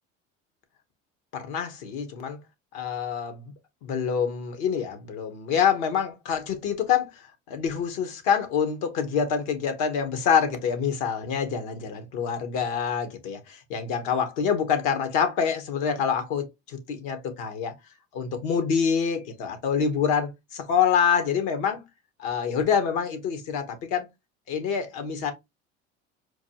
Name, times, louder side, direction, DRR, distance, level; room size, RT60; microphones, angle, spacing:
voice 1, 1.3-2.4 2.7-3.4 3.8-17.7 18.1-21.8 22.2-24.1 24.5-25.3, left 7 dB, 75° left, 1.2 m, -26 dB
4.5 x 2.3 x 2.8 m
hypercardioid pair, 80°, 35 cm